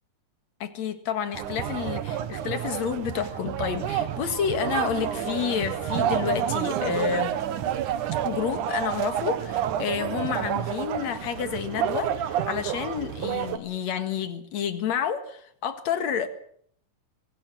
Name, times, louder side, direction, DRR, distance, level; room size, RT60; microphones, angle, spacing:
voice 1, 0.6-7.4 8.2-16.3, left 8 dB, 60° left, 2.9 m, -29 dB
sound 1, 1.3-13.6, right 10 dB, 75° right, 2.6 m, -29 dB
23.5 x 16.5 x 7.6 m
omnidirectional pair, 3.6 m